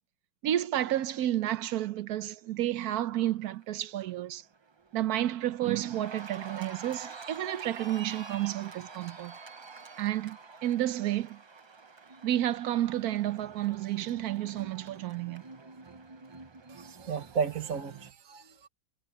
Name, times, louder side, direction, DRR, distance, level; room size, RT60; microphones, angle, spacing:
voice 1, 0.4-4.4 4.9-9.3 10.0-11.4 12.2-15.4, right 13 dB, 90° right, 1.2 m, -31 dB
Cheering, 3.2-3.6 4.0-18.1, right 4 dB, 40° right, 0.4 m, -48 dB
voice 2, 16.7-18.7, right 6 dB, 65° right, 1.8 m, -34 dB
omnidirectional pair, 1.6 m